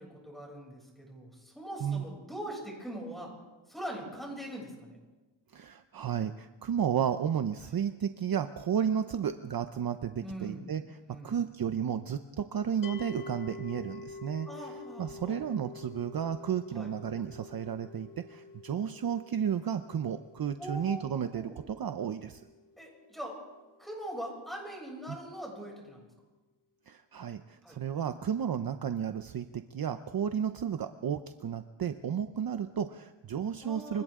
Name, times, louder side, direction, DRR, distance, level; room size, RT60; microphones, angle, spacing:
voice 1, 0.0-3.3 3.7-5.0 7.6-7.7 10.2-10.7 11.1-11.4 14.5-15.4 16.7-16.9 20.6-21.0 21.3-21.6 22.8-23.4 23.8-26.0 27.6-27.8 33.6-34.0, right 1 dB, ahead, -2 dB, 6.9 m, -42 dB
voice 2, 5.5-11.0 11.2-14.5 15.0-22.4 25.1-25.2 26.9-34.0, right 8 dB, 50° right, 9 dB, 0.8 m, -33 dB
sound 1, 12.8-24.0, left 4 dB, 45° left, 1.6 m, -48 dB
30.0 x 25.0 x 3.7 m, 1.2 s
wide cardioid pair, 155°, 47 cm